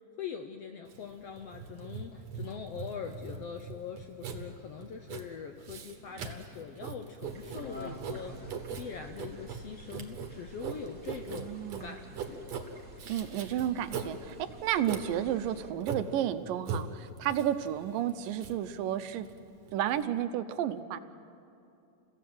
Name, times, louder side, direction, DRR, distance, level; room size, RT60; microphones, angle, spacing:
voice 1, 0.2-8.4 8.8-12.6, left 7 dB, 75° left, 6 dB, 1.4 m, -42 dB
Writing, 0.9-20.0, right 6 dB, 60° right, 2.5 m, -41 dB
Laughter, 1.7-6.0 7.5-10.5 10.9-11.0, left 1 dB, 35° left, 2.3 m, -49 dB
sound 1, 7.2-15.7, right 2 dB, 30° right, 1.9 m, -52 dB
voice 2, 11.3-12.0 13.1-19.3 19.7-21.0, right 11 dB, 90° right, 11 dB, 2.5 m, -32 dB
30.0 x 16.0 x 7.8 m, 2.7 s
omnidirectional pair, 3.8 m